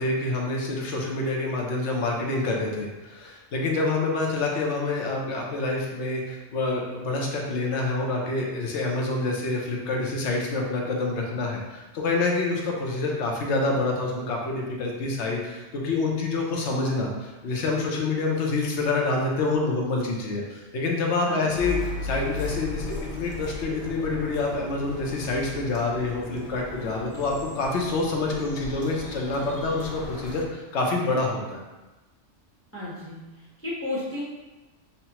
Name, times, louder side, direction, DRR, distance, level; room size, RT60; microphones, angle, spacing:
voice 1, 0.0-31.6, left 3 dB, 75° left, -1 dB, 1.0 m, -27 dB
voice 2, 21.3-21.6 32.7-33.2 33.6-34.2, left 2 dB, 15° left, -8 dB, 0.8 m, -32 dB
sound 1, 21.5-30.4, left 2 dB, 55° left, 0.7 m, -36 dB
5.5 x 2.1 x 2.9 m, 1.1 s
omnidirectional pair, 1.2 m